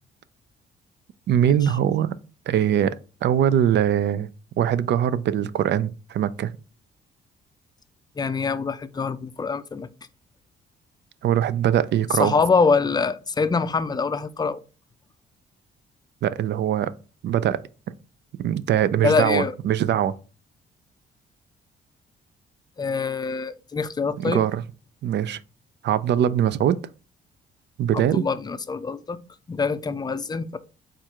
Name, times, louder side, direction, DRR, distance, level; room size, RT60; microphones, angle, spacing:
voice 1, 1.3-2.1 2.5-4.3 4.6-6.5 11.2-12.3 16.2-16.9 17.2-17.6 18.4-20.1 24.2-24.6 25.0-25.4 25.8-26.8 27.8-28.2, right 10 dB, 60° right, 0.4 m, -22 dB
voice 2, 8.2-9.9 12.2-14.6 19.0-19.5 22.8-24.5 27.9-29.2 29.5-30.6, left 4 dB, 20° left, 0.4 m, -24 dB
4.5 x 2.5 x 4.3 m
cardioid pair, 90°, 20 cm